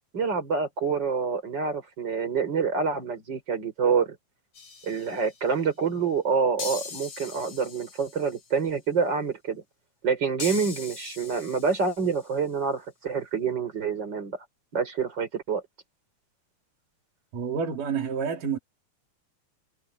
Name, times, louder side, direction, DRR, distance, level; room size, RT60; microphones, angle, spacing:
voice 1, 0.1-4.2 4.8-9.6 10.0-14.4 14.7-15.6, right 5 dB, 35° right, 5.4 m, -27 dB
sound 1, 4.6-5.5 6.6-8.5 10.4-12.3, left 5 dB, 75° left, 6.7 m, -40 dB
voice 2, 17.3-18.6, right 6 dB, 90° right, 4.2 m, -29 dB
omnidirectional pair, 3.7 m